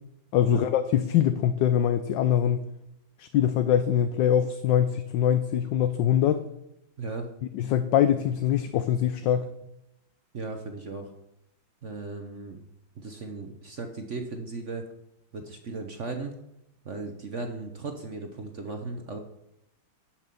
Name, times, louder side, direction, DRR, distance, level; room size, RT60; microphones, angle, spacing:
voice 1, 0.3-2.7 3.2-6.4 7.5-9.5, left 10 dB, 70° left, 11 dB, 1.2 m, -23 dB
voice 2, 7.0-7.3 10.3-11.1 11.8-12.6 13.0-14.9 15.3-16.3 16.8-19.2, right 3 dB, 50° right, 5 dB, 1.0 m, -36 dB
12.0 x 5.9 x 6.9 m, 0.86 s
omnidirectional pair, 2.3 m